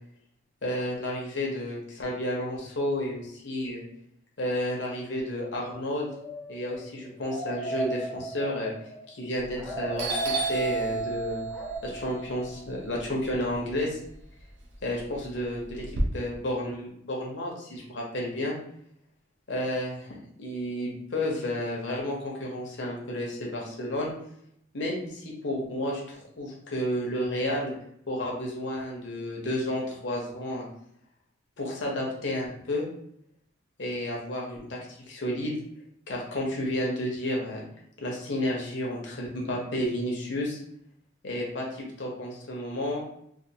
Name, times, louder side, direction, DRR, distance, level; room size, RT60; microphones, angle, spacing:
voice 1, 0.6-3.8 4.4-6.1 6.5-8.7 9.1-11.5 11.8-14.0 14.8-18.6 19.5-24.1 24.7-27.7 28.1-30.7 31.6-32.9 33.8-34.8 35.1-35.5 36.1-37.6 38.0-40.6 41.2-43.0, left 1 dB, 65° left, -2 dB, 0.8 m, -31 dB
sound 1, 5.7-9.2 9.5-10.8 11.5-11.8, right 2 dB, ahead, 0.6 m, -37 dB
Doorbell, 9.4-9.7 10.0-14.1 14.5-16.0, right 3 dB, 60° right, 0.6 m, -32 dB
2.4 x 2.4 x 2.8 m, 0.72 s
head